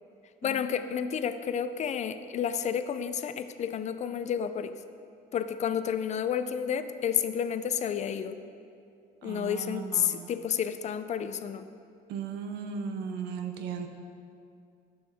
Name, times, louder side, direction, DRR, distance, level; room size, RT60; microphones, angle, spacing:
voice 1, 0.4-4.7 5.3-8.4 9.2-11.7, left 8 dB, 45° left, 11 dB, 0.4 m, -30 dB
voice 2, 9.2-10.3 12.1-13.9, right 6 dB, 80° right, 6 dB, 0.7 m, -37 dB
10.0 x 6.9 x 3.5 m, 2.5 s
cardioid pair, 110°, 17 cm